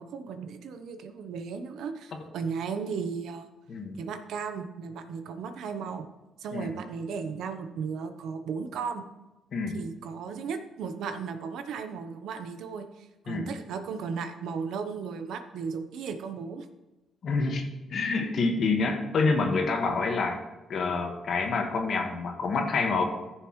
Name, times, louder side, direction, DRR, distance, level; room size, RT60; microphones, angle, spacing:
voice 1, 0.0-3.5 4.0-6.1 6.4-9.0 9.7-16.6, right 5 dB, 80° right, 7 dB, 0.9 m, -35 dB
voice 2, 17.2-20.4 20.7-23.0, left 4 dB, 60° left, 3 dB, 1.6 m, -27 dB
14.5 x 6.6 x 3.2 m, 1.1 s
cardioid pair, 90°, 0 cm